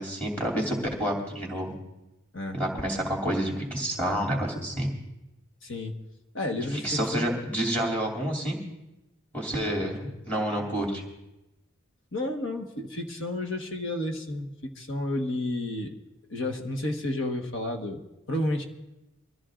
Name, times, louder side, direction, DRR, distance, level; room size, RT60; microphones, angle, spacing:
voice 1, 0.0-1.8 2.5-4.9 6.8-8.6 9.3-11.0, right 1 dB, 5° left, -1 dB, 2.6 m, -29 dB
voice 2, 5.6-6.0 6.3-7.2 12.1-15.9 16.3-18.0 18.3-18.6, left 1 dB, 60° left, 4 dB, 1.3 m, -31 dB
23.5 x 14.0 x 2.5 m, 0.95 s
head